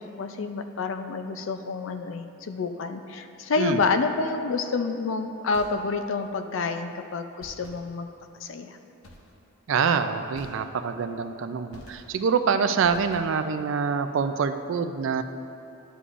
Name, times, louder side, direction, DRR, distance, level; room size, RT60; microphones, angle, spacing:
voice 1, 0.1-8.1 8.4-8.8, left 4 dB, 65° left, 7 dB, 0.4 m, -28 dB
sound 1, 5.5-6.3 7.4-8.3 9.0-9.6 10.3-11.2 11.7-12.4 12.8-13.6, left 1 dB, 85° left, 0.8 m, -50 dB
voice 2, 9.7-15.2, right 6 dB, 60° right, 9 dB, 0.3 m, -25 dB
11.0 x 6.9 x 2.5 m, 2.8 s
head